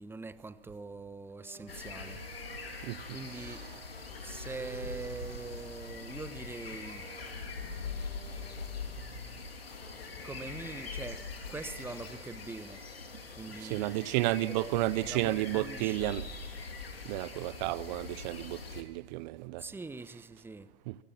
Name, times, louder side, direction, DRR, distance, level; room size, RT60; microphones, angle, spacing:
voice 1, 0.0-2.2 3.1-3.7 4.2-7.1 10.2-12.8 13.3-16.1 19.6-20.7, right 3 dB, 10° right, 1.2 m, -43 dB
sound 1, 1.3-9.3, right 5 dB, 85° right, 6.4 m, -55 dB
sound 2, 1.7-18.8, left 4 dB, 85° left, 3.5 m, -43 dB
voice 2, 3.5-3.8 13.6-16.3 17.0-19.6 20.9-21.0, right 18 dB, 50° right, 1.0 m, -32 dB
sound 3, 6.9-12.2, left 5 dB, 35° left, 4.9 m, -56 dB
28.5 x 24.0 x 6.1 m
hypercardioid pair, 100°, 29 cm